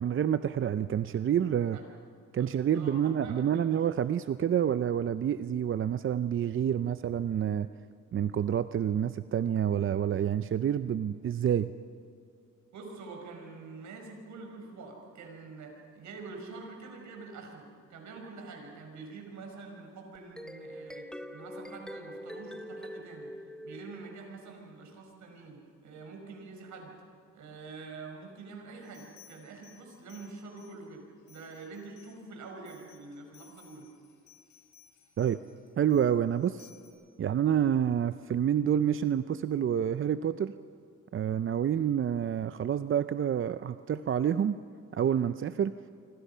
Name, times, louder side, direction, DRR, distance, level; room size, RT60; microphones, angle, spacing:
voice 1, 0.0-1.8 2.3-7.7 8.1-11.7 35.2-35.4 35.8-36.7 37.2-40.5 41.1-44.6 44.9-45.7, right 9 dB, 45° right, 12 dB, 0.6 m, -28 dB
voice 2, 2.7-3.7 12.7-21.1 21.3-23.3 23.6-26.9 27.3-33.9, right 3 dB, 70° right, 3 dB, 5.6 m, -46 dB
sound 1, 20.1-24.5, equal, ahead, 1.2 m, -44 dB
sound 2, 28.8-30.9 31.3-36.9, left 9 dB, 75° left, 7.7 m, -60 dB
26.0 x 25.0 x 5.6 m, 2.5 s
cardioid pair, 90°, 30 cm